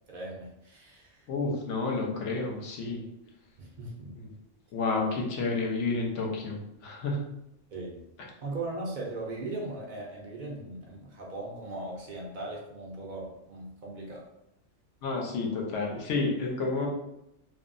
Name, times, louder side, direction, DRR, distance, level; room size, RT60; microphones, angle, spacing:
voice 1, 0.1-1.3 3.6-4.2 7.7-8.1 8.4-14.3, right 2 dB, 55° right, -2 dB, 0.5 m, -39 dB
voice 2, 1.3-3.1 4.2-4.3 4.7-7.2 15.0-16.9, left 3 dB, 75° left, 0 dB, 1.0 m, -30 dB
3.2 x 2.0 x 2.4 m, 0.84 s
omnidirectional pair, 1.3 m